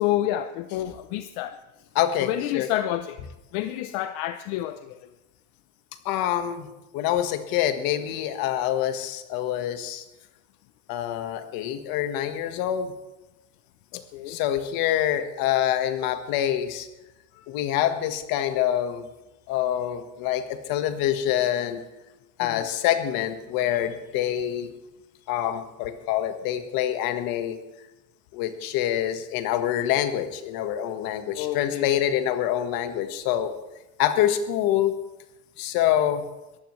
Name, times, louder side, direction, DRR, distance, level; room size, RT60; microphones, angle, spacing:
voice 1, 0.0-1.6 2.2-3.2 3.5-5.1 13.9-14.4 17.3-17.4 22.4-22.7 31.4-32.2, left 13 dB, 90° left, 9 dB, 0.8 m, -29 dB
voice 2, 1.9-2.7 6.0-10.0 10.9-12.9 14.3-16.9 17.5-19.1 19.5-21.8 22.4-24.7 25.3-27.6 28.3-33.5 34.0-34.9 35.6-36.3, left 11 dB, 70° left, 8 dB, 1.6 m, -26 dB
21.5 x 15.0 x 3.2 m, 1.0 s
cardioid pair, 145°, 36 cm